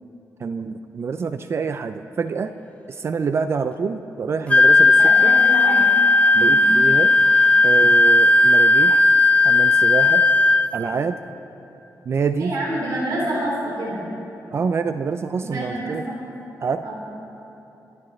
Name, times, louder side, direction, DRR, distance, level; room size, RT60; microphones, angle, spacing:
voice 1, 0.4-2.5 2.9-5.3 6.3-7.1 7.6-9.0 9.4-10.2 10.7-11.2 12.1-12.5 14.5-16.1 16.6-16.9, right 5 dB, 45° right, 10 dB, 0.4 m, -26 dB
Wind instrument woodwind instrument, 4.5-10.7, left 2 dB, 20° left, 0.6 m, -15 dB
voice 2, 5.0-5.8 6.4-6.7 12.4-14.0 15.4-16.2 16.8-16.9, right 1 dB, 85° right, -5 dB, 4.0 m, -28 dB
27.0 x 11.5 x 3.2 m, 3.0 s
wide cardioid pair, 145°, 6 cm